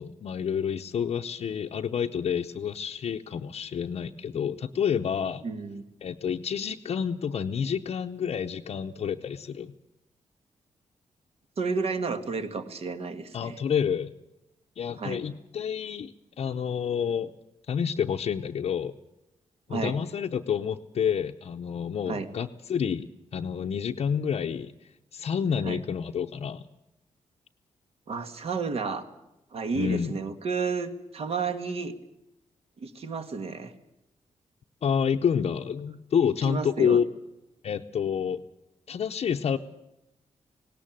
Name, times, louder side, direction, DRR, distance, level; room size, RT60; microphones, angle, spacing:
voice 1, 0.0-5.5 6.0-9.7 13.3-14.1 14.8-17.3 17.7-18.9 19.7-24.7 25.1-26.6 29.8-30.1 34.8-37.1 37.6-38.4 38.9-39.6, left 7 dB, 55° left, 2 dB, 0.7 m, -29 dB
voice 2, 5.4-5.8 11.6-13.6 15.0-15.2 19.7-19.9 22.1-22.3 25.6-25.8 28.1-29.0 29.5-31.9 32.8-33.7 36.4-37.0, right 4 dB, 55° right, 9 dB, 1.7 m, -31 dB
18.5 x 18.0 x 8.9 m, 0.92 s
wide cardioid pair, 170°, 12 cm